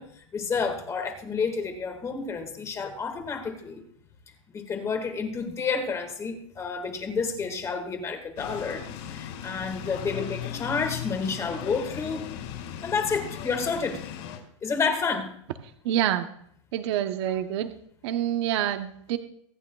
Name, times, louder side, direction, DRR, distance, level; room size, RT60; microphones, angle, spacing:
voice 1, 0.0-3.8 4.5-12.2 12.8-14.0 14.6-15.3, left 5 dB, 20° left, 5 dB, 1.8 m, -30 dB
sound 1, 8.4-14.4, left 9 dB, 55° left, 4.5 m, -37 dB
voice 2, 15.8-16.3 16.7-17.7 18.0-19.2, right 11 dB, 60° right, 8 dB, 0.9 m, -26 dB
23.5 x 8.9 x 2.3 m, 0.68 s
supercardioid pair, 150°, 16 cm